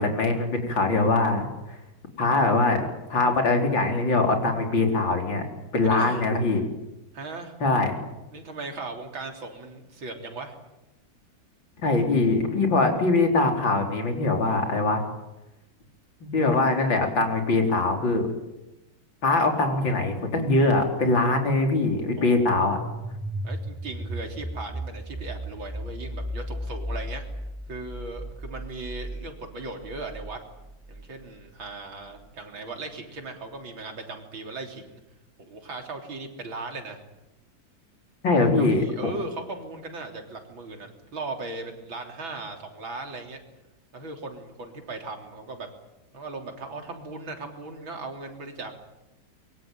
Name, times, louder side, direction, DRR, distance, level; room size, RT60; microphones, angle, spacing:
voice 1, 0.0-1.8 2.2-2.8 3.1-5.4 5.7-6.6 7.6-8.0 11.8-15.0 16.2-18.3 19.2-22.8 38.2-38.8, left 3 dB, 75° left, 3 dB, 4.8 m, -22 dB
voice 2, 5.8-6.2 7.1-7.5 8.3-10.6 22.2-22.8 23.4-27.2 27.7-30.4 30.9-35.0 35.5-37.0 38.4-43.4 43.9-45.7 46.1-48.8, right 3 dB, 90° right, 4 dB, 4.2 m, -38 dB
sound 1, 22.7-31.4, equal, 10° right, 0.4 m, -35 dB
24.5 x 23.0 x 9.3 m, 0.96 s
omnidirectional pair, 2.1 m